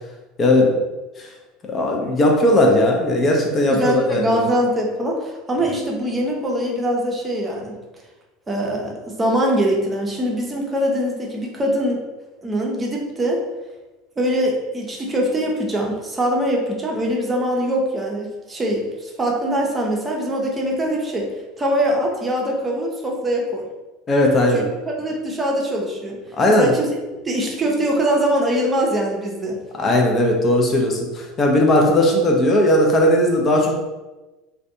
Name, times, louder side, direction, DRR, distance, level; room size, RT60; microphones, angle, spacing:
voice 1, 0.4-0.7 1.7-4.4 24.1-24.7 26.4-26.7 29.8-33.7, left 1 dB, 30° left, 0 dB, 0.5 m, -17 dB
voice 2, 3.7-7.7 8.5-12.0 12.4-13.4 14.2-21.3 21.6-23.6 24.5-24.6 25.0-26.2 26.6-26.9 27.2-29.6, equal, 20° right, -1 dB, 0.6 m, -22 dB
2.4 x 2.2 x 2.6 m, 1.1 s
figure-of-eight pair, 75°, 0 cm